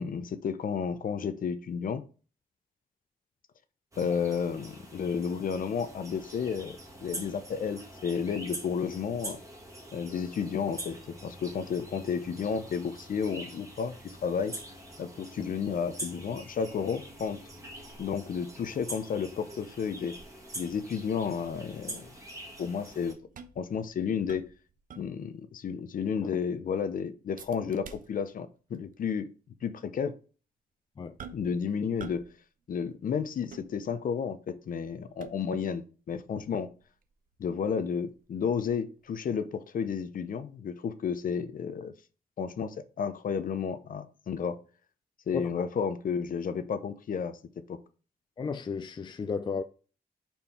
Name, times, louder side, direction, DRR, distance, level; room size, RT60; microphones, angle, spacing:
voice 1, 0.0-2.0 4.0-9.4 9.9-14.5 15.0-17.4 18.0-20.2 20.6-22.1 22.6-23.2 23.6-24.5 25.0-29.3 29.6-30.1 31.3-32.3 32.7-36.7 37.4-41.9 42.4-44.6 45.3-47.4 47.7-47.8, left 6 dB, 60° left, 0.7 m, -32 dB
sound 1, 3.9-23.1, right 1 dB, 20° right, 1.5 m, -45 dB
sound 2, 23.2-25.5 25.8-25.9 26.3-26.7 27.4-28.5 28.7-28.9 29.6-29.7 31.2-31.6 32.0-32.4 32.6-34.2 34.7-35.7 36.3-39.1 39.4-39.5, right 5 dB, 60° right, 0.7 m, -50 dB
voice 2, 48.4-49.6, left 5 dB, 30° left, 0.4 m, -33 dB
5.4 x 4.4 x 4.3 m
wide cardioid pair, 160°, 16 cm